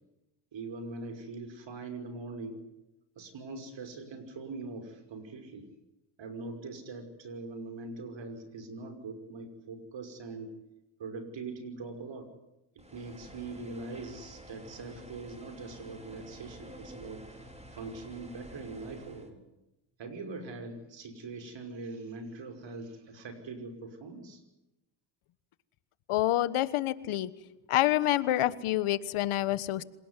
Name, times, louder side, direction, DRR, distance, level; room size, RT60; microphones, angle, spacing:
voice 1, 0.5-2.6 3.2-5.7 6.2-10.6 11.0-12.3 12.8-17.4 17.7-19.4 20.0-24.4, right 3 dB, 60° right, 7 dB, 5.8 m, -42 dB
sound 1, 12.8-19.3, equal, 15° right, 4.4 m, -50 dB
voice 2, 26.1-27.3 27.7-29.8, left 14 dB, 80° left, 16 dB, 1.4 m, -27 dB
27.0 x 18.0 x 9.9 m, 0.95 s
cardioid pair, 80°, 49 cm